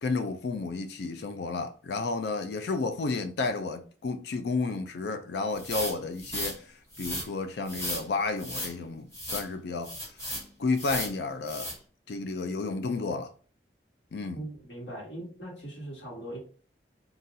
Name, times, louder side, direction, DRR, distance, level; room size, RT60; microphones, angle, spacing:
voice 1, 0.0-6.6 7.0-9.9 10.6-11.7 12.1-13.3 14.1-14.4, left 3 dB, 65° left, 0.4 m, -31 dB
sound 1, 5.6-6.6 6.9-7.3 7.7-8.0 8.4-8.7 9.1-9.5 9.8-10.4 10.8-11.1 11.5-11.7, equal, 15° left, 1.4 m, -35 dB
voice 2, 14.3-16.4, right 1 dB, 90° left, 1.6 m, -40 dB
3.8 x 2.4 x 2.7 m
head